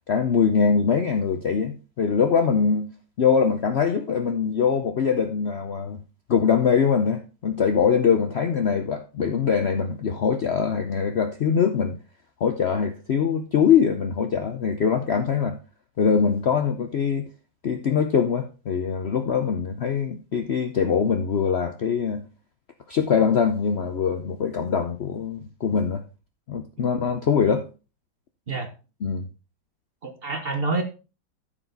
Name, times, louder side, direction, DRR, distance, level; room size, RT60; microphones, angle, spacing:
voice 1, 0.1-2.9 3.2-6.0 6.3-12.0 12.4-15.6 16.0-17.3 17.6-22.3 22.9-26.0 26.5-27.7 29.0-29.3, left 6 dB, 85° left, 0.5 m, -23 dB
voice 2, 30.0-30.8, right 3 dB, 40° right, 1.1 m, -27 dB
13.5 x 4.7 x 3.9 m
omnidirectional pair, 2.1 m